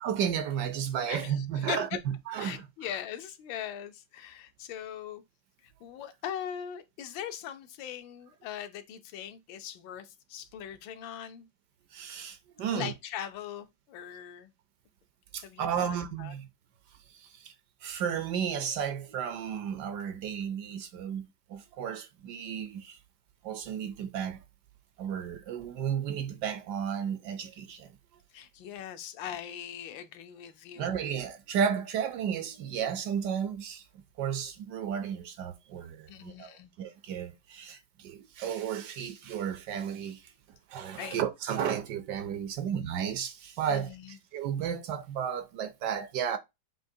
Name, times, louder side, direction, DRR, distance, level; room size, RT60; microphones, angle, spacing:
voice 1, 0.0-2.7 11.9-12.9 15.3-16.5 17.2-17.5 17.8-21.2 21.5-23.0 23.4-24.4 25.0-27.9 30.8-33.8 34.2-36.5 36.8-40.2 40.7-46.4, right 8 dB, 70° right, 1.1 m, -33 dB
voice 2, 1.1-2.0 2.4-5.2 5.8-11.5 12.7-14.5 15.4-16.3 28.3-31.1 36.1-36.7 41.0-41.2 43.7-44.2, left 10 dB, 85° left, 1.4 m, -40 dB
7.6 x 2.6 x 2.7 m
omnidirectional pair, 2.1 m